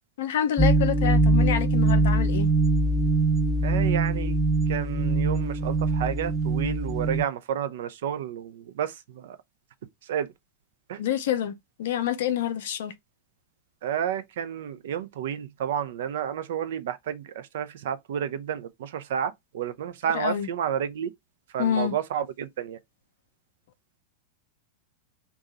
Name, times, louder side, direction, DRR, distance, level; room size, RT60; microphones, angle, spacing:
voice 1, 0.2-2.5 11.0-11.5 11.8-12.9 20.1-20.5 21.6-21.9, left 10 dB, 55° left, 0.5 m, -27 dB
sound 1, 0.6-7.2, right 2 dB, 5° right, 0.6 m, -23 dB
voice 2, 3.6-4.4 4.7-9.4 10.1-10.3 10.9-11.0 13.8-21.1 21.5-22.8, right 9 dB, 55° right, 0.4 m, -31 dB
2.7 x 2.3 x 3.9 m
figure-of-eight pair, 90°, 0 cm